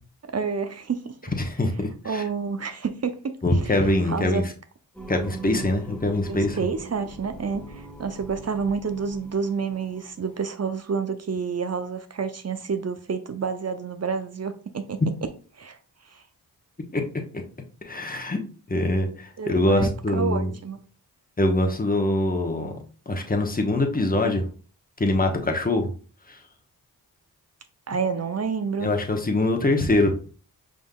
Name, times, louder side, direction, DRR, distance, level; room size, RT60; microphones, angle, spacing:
voice 1, 0.3-1.1 2.0-3.4 3.6-4.4 6.2-15.0 15.6-15.8 16.1-16.2 19.4-20.8 27.9-28.9, right 5 dB, 40° right, 0.7 m, -29 dB
voice 2, 1.4-2.2 3.4-4.4 5.1-6.6 16.9-17.0 17.9-18.4 18.7-20.5 21.4-22.7 23.1-24.4 25.0-25.9 26.3-26.4 28.8-30.2, left 1 dB, 20° left, 1.1 m, -23 dB
Singing, 4.9-10.4, right 3 dB, 5° left, 1.5 m, -41 dB
5.0 x 3.8 x 2.3 m
cardioid pair, 40°, 41 cm